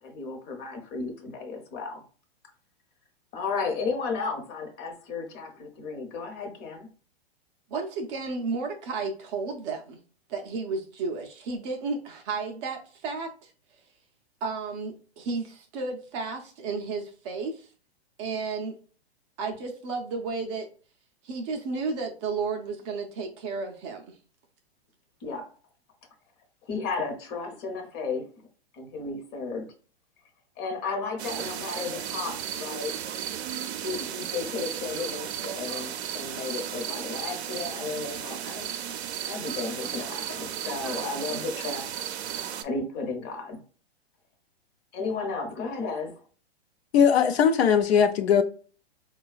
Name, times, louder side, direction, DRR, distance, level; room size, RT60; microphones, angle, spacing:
voice 1, 0.0-2.0 3.3-6.9 25.2-25.5 26.7-28.3 28.7-29.7 30.6-32.9 33.8-38.7 39.2-41.9 42.6-43.6 44.9-46.1, left 4 dB, 30° left, 0.8 m, -33 dB
voice 2, 7.7-10.0 10.3-13.5 14.4-17.7 18.2-18.8 19.4-20.7 21.2-24.2, right 4 dB, 30° right, 0.4 m, -32 dB
sound 1, 31.2-42.6, right 9 dB, 75° right, 0.5 m, -34 dB
voice 3, 46.9-48.4, left 7 dB, 70° left, 0.6 m, -20 dB
3.9 x 2.3 x 2.3 m
hypercardioid pair, 125°, 33 cm